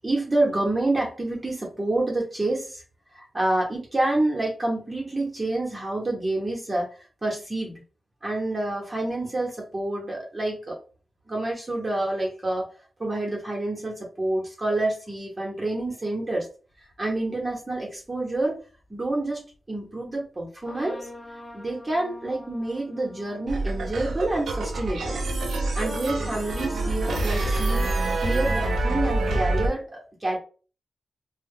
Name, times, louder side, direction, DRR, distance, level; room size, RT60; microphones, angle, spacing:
voice 1, 0.0-2.8 3.1-7.7 8.2-10.8 11.3-12.7 13.0-16.5 17.0-18.6 18.9-21.1 21.5-25.2 25.7-27.9 28.2-30.4, right 2 dB, 30° right, -2 dB, 0.9 m, -28 dB
sound 1, 16.8-17.2 18.4-18.5 20.6-24.6 25.0-29.8, left 1 dB, 45° left, 0.7 m, -41 dB
sound 2, 23.5-29.7, right 2 dB, 85° right, 0.5 m, -26 dB
2.1 x 2.0 x 3.5 m, 0.37 s
cardioid pair, 55°, 0 cm